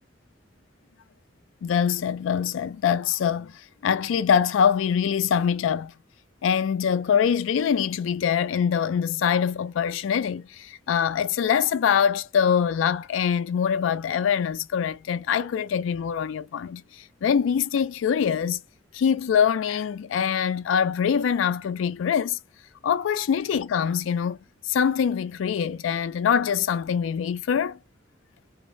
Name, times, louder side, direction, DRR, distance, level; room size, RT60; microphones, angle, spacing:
voice 1, 1.6-5.9 6.4-18.6 18.9-22.4 22.8-24.4 24.6-27.8, left 7 dB, 80° left, 0.3 m, -24 dB
2.4 x 2.0 x 3.1 m
head